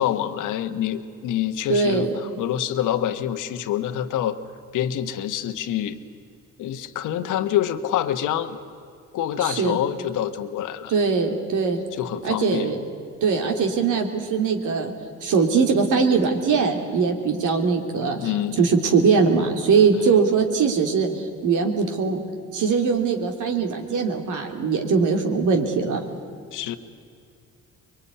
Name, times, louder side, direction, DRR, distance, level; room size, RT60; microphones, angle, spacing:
voice 1, 0.0-4.4 4.7-6.0 6.6-8.6 9.1-10.9 11.9-12.7 18.2-18.7 19.9-20.2 26.5-26.8, left 11 dB, 90° left, 9 dB, 1.4 m, -26 dB
voice 2, 1.7-2.1 9.4-9.8 10.9-11.8 12.2-12.8 13.2-14.9 15.2-18.3 18.6-22.2 22.5-26.0, right 5 dB, 80° right, 4 dB, 3.2 m, -21 dB
24.5 x 22.5 x 9.7 m, 2.3 s
cardioid pair, 90°, 30 cm